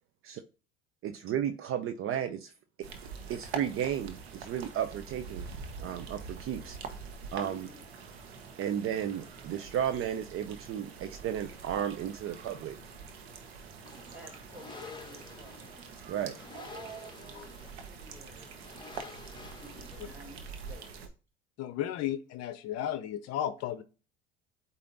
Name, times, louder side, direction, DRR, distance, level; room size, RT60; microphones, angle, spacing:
voice 1, 1.0-2.5 2.8-2.9 3.3-5.5 5.8-6.8 7.3-7.7 8.6-12.8 16.1-16.4, right 9 dB, 45° right, 0.6 m, -33 dB
sound 1, 2.8-21.1, right 5 dB, 85° right, 1.1 m, -45 dB
voice 2, 7.4-7.8 14.1-15.6 16.5-18.5 19.6-21.1, right 2 dB, 5° right, 3.6 m, -51 dB
sound 2, 13.8-20.6, left 4 dB, 15° left, 1.2 m, -50 dB
voice 3, 21.6-23.8, left 11 dB, 55° left, 0.7 m, -34 dB
8.4 x 2.8 x 4.0 m
hypercardioid pair, 80°, 30 cm